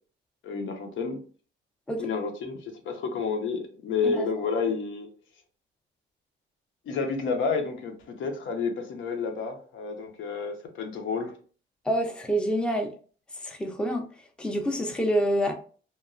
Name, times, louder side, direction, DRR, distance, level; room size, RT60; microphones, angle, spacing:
voice 1, 0.4-1.2 2.0-5.1 6.9-11.3, left 5 dB, 75° left, 0.7 m, -30 dB
voice 2, 11.9-12.9 13.4-14.0 14.4-15.5, equal, 5° left, 0.5 m, -27 dB
3.0 x 2.2 x 2.4 m
cardioid pair, 90°, 20 cm